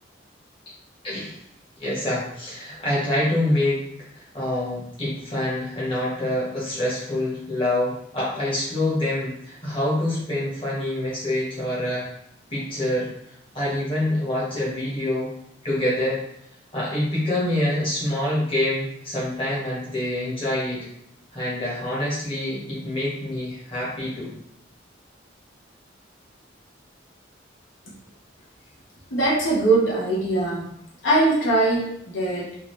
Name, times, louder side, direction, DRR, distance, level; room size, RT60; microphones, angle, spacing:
voice 1, 1.0-1.4 1.8-3.8 4.1-12.1 12.5-13.1 13.5-15.3 15.6-16.2 16.7-20.9 21.3-24.3, left 1 dB, 30° left, -7 dB, 1.4 m, -26 dB
voice 2, 29.1-30.7 31.0-32.7, right 2 dB, 80° left, -5 dB, 1.1 m, -21 dB
3.8 x 2.7 x 3.3 m, 0.74 s
head